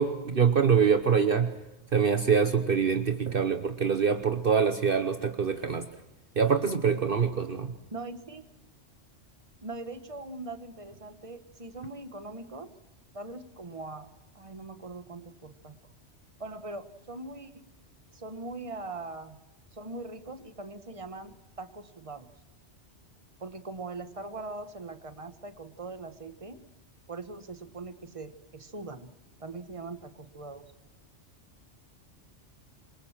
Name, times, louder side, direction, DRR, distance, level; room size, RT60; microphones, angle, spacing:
voice 1, 0.0-1.5 1.9-5.9 6.4-7.7, right 6 dB, 50° right, 8 dB, 1.2 m, -25 dB
voice 2, 7.9-8.4 9.6-12.7 13.1-14.1 14.3-15.7 16.4-17.6 18.1-19.4 19.7-22.3 23.4-26.6 27.1-29.1 29.4-30.6, right 3 dB, 30° right, 10 dB, 1.5 m, -41 dB
27.0 x 24.0 x 7.4 m, 1.0 s
omnidirectional pair, 1.2 m